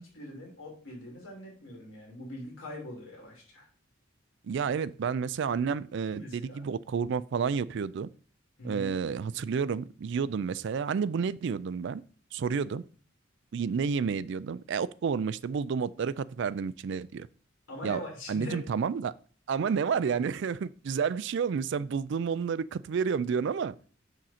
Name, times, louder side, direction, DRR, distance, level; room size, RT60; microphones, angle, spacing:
voice 1, 0.0-3.7 6.1-6.6 8.6-8.9 17.7-18.6, left 1 dB, 80° left, 2.7 m, -42 dB
voice 2, 4.5-8.1 8.6-12.0 12.3-12.8 13.5-17.3 17.8-18.0 18.3-19.1 19.5-23.7, right 6 dB, 60° right, 0.3 m, -30 dB
6.4 x 6.2 x 4.2 m
head